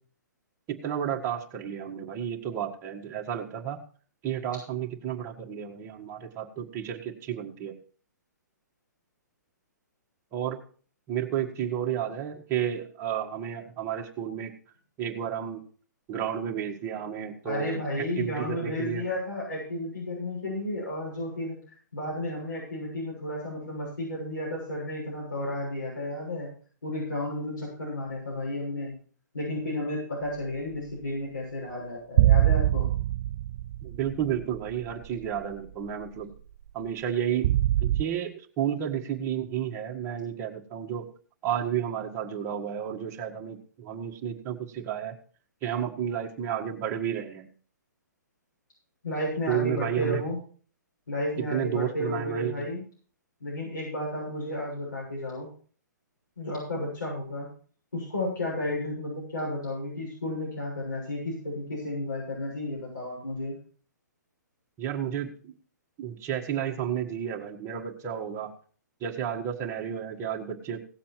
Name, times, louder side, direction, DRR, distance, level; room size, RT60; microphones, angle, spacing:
voice 1, 0.7-3.8 4.2-7.7 10.3-10.6 11.1-14.5 15.0-15.6 16.1-19.0 33.8-36.3 36.7-37.5 37.8-41.0 41.4-45.2 45.6-47.5 49.5-50.2 51.4-52.7 64.8-65.5 66.0-68.5 69.0-70.8, right 9 dB, 25° right, 0 dB, 1.7 m, -32 dB
voice 2, 17.4-21.6 21.9-26.5 26.8-29.0 29.3-32.9 49.0-50.4 51.1-52.8 53.4-55.5 56.4-57.5 57.9-63.6, left 1 dB, 85° left, -5 dB, 6.8 m, -32 dB
sound 1, 32.2-34.9 35.4-35.5 37.4-38.0, right 13 dB, 45° right, 0.4 m, -23 dB
17.0 x 7.4 x 4.5 m, 0.43 s
figure-of-eight pair, 125°, 10 cm